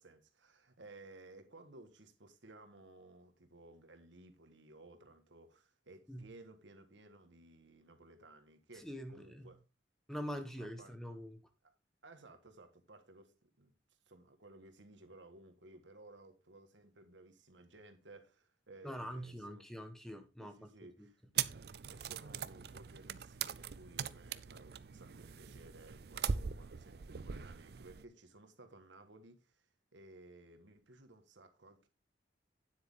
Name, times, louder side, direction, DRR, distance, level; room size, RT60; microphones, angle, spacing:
voice 1, 0.0-9.6 10.3-10.9 11.6-11.7 12.0-13.7 14.1-19.7 20.4-21.2 21.9-29.7 29.9-31.9, right 2 dB, 80° right, 1.5 m, -58 dB
voice 2, 8.8-9.5 10.1-11.4 18.8-20.7 21.0-21.1, equal, ahead, 1.1 m, -44 dB
sound 1, 21.3-28.0, right 7 dB, 55° right, 0.5 m, -41 dB
9.7 x 8.0 x 3.6 m
head